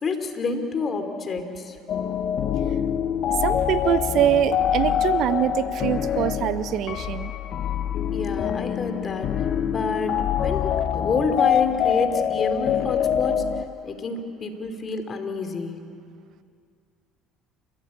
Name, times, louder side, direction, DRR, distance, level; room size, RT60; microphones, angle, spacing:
voice 1, 0.0-1.8 8.1-15.9, left 4 dB, 40° left, 7 dB, 3.0 m, -28 dB
sound 1, 1.9-13.6, left 9 dB, 55° left, 0.8 m, -25 dB
voice 2, 3.4-7.3, right 10 dB, 65° right, 12 dB, 1.1 m, -23 dB
29.5 x 15.0 x 8.6 m, 2.3 s
supercardioid pair, 75°, 0 cm